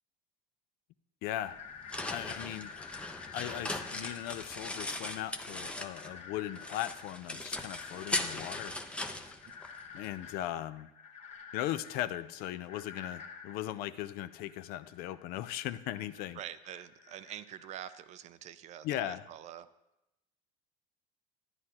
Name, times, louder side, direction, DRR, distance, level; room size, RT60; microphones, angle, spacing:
voice 1, 1.2-1.6 2.0-2.9 3.3-8.7 9.9-10.9 11.5-16.4 18.8-19.3, left 13 dB, 60° left, 14 dB, 0.5 m, -38 dB
sound 1, 1.3-18.0, left 6 dB, 35° left, 1.1 m, -50 dB
sound 2, 1.5-6.2 6.6-10.1, left 1 dB, 5° left, 0.6 m, -39 dB
voice 2, 16.3-19.7, right 11 dB, 40° right, 13 dB, 0.5 m, -45 dB
12.5 x 9.6 x 2.9 m, 0.91 s
supercardioid pair, 125°, 18 cm